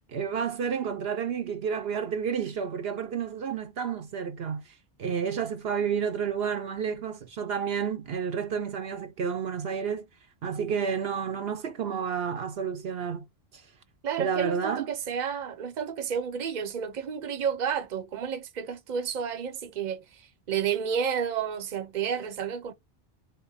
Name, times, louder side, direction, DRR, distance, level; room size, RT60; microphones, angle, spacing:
voice 1, 0.1-4.6 5.0-10.1 10.4-13.2 14.2-14.9, right 7 dB, 75° right, 1.0 m, -30 dB
voice 2, 14.0-22.7, right 7 dB, 50° right, 0.8 m, -31 dB
3.7 x 2.2 x 3.9 m
omnidirectional pair, 1.0 m